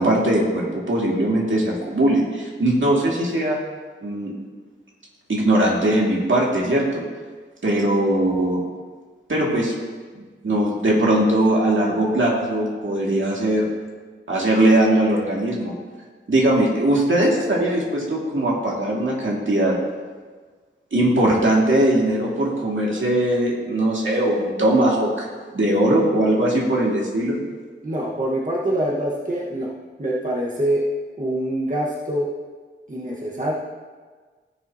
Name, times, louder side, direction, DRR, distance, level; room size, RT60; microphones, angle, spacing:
voice 1, 0.0-3.6 4.0-4.3 5.3-7.0 7.6-8.6 9.3-9.7 10.1-13.7 14.3-15.7 16.3-19.8 20.9-25.3 25.5-27.4, right 1 dB, 70° right, -3 dB, 2.2 m, -20 dB
voice 2, 27.8-29.7 30.0-30.8 31.2-32.3 32.9-33.5, right 1 dB, 40° right, -4 dB, 1.4 m, -24 dB
17.0 x 7.1 x 2.8 m, 1.4 s
wide cardioid pair, 80°, 21 cm